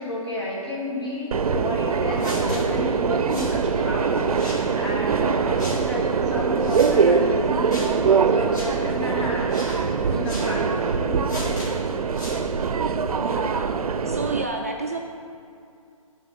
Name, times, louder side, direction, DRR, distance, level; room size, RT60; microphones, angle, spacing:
voice 1, 0.0-9.5 10.1-11.3, left 1 dB, 45° left, -3 dB, 2.0 m, -31 dB
Subway metro underground, 1.3-14.4, right 5 dB, 85° right, 0.5 m, -23 dB
sound 1, 2.2-2.6 3.3-3.6 4.3-4.6 5.6-5.8 6.6-6.9 7.7-7.9 8.5-8.7 9.5-9.8 10.2-10.5 11.3-11.7 12.1-12.4, equal, 30° left, 1.8 m, -35 dB
voice 2, 13.2-13.8 14.1-15.0, right 2 dB, 25° right, 0 dB, 0.3 m, -30 dB
9.3 x 4.0 x 5.4 m, 2.4 s
hypercardioid pair, 170°, 18 cm